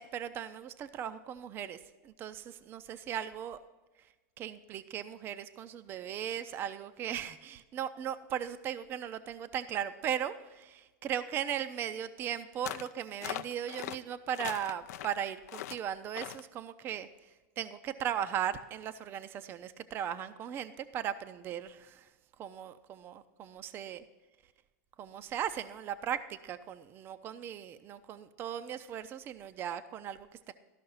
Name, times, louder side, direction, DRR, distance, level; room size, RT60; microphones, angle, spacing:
voice 1, 0.0-3.6 4.4-17.1 17.6-22.1 22.4-24.0 25.0-30.5, right 9 dB, 25° right, 12 dB, 0.4 m, -37 dB
sound 1, 12.6-12.9 13.2-14.0 14.3-15.2 15.5-15.8 16.1-16.4, left 13 dB, 75° left, 0.4 m, -40 dB
12.5 x 5.7 x 5.5 m, 1.2 s
supercardioid pair, 155°, 9 cm